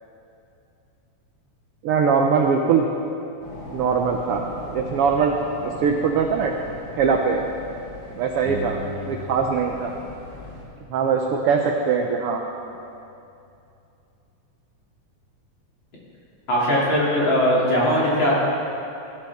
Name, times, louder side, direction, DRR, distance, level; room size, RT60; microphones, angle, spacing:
voice 1, 1.8-2.9 3.7-4.4 4.7-6.5 7.0-7.4 8.1-8.8 9.1-9.9 10.9-12.4, right 6 dB, 75° right, 3 dB, 1.3 m, -21 dB
sound 1, 3.4-10.6, left 1 dB, 85° left, 3.9 m, -39 dB
sound 2, 8.4-10.0 10.2-12.0, left 3 dB, 65° left, 2.7 m, -39 dB
voice 2, 16.5-18.3, equal, 40° left, -7 dB, 3.4 m, -20 dB
17.0 x 12.5 x 3.6 m, 2.7 s
omnidirectional pair, 3.3 m